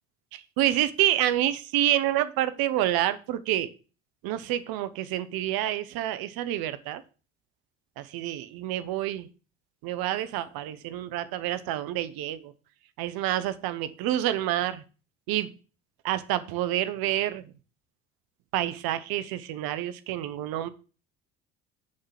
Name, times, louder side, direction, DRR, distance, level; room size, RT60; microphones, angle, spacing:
voice 1, 0.6-3.7 4.2-7.0 8.0-9.3 9.8-12.5 13.0-14.8 15.3-15.5 16.0-17.5 18.5-20.7, right 13 dB, 65° right, 14 dB, 0.8 m, -28 dB
6.4 x 3.7 x 5.8 m, 0.36 s
hypercardioid pair, 70°, 38 cm